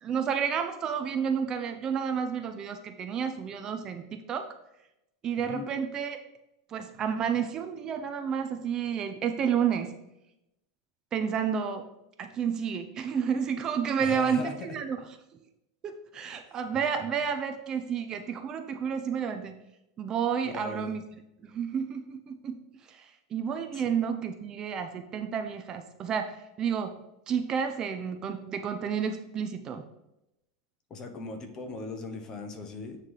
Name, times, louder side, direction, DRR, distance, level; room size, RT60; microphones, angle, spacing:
voice 1, 0.0-4.5 5.2-6.2 6.7-9.9 11.1-11.8 12.2-15.0 15.8-19.6 20.0-21.0 21.4-27.0 27.3-29.9, right 7 dB, 30° right, 6 dB, 0.6 m, -31 dB
voice 2, 14.0-14.8 20.4-20.9 23.7-23.9 30.9-33.0, left 3 dB, 25° left, 6 dB, 1.0 m, -39 dB
8.4 x 3.2 x 5.6 m, 0.88 s
supercardioid pair, 140°, 2 cm